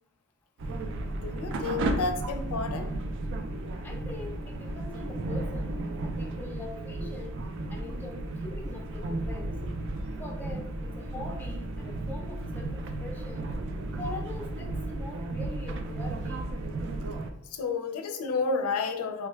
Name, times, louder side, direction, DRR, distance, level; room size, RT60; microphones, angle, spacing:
sound 1, 0.6-17.3, right 2 dB, 60° right, 0.4 m, -34 dB
voice 1, 1.1-2.9 17.5-19.3, left 4 dB, 80° left, 5 dB, 0.4 m, -31 dB
voice 2, 3.8-5.8 6.0-7.4 7.7-9.6 10.2-13.5 14.0-16.5, left 2 dB, 10° left, 1 dB, 0.4 m, -43 dB
3.5 x 2.2 x 3.1 m, 0.75 s
head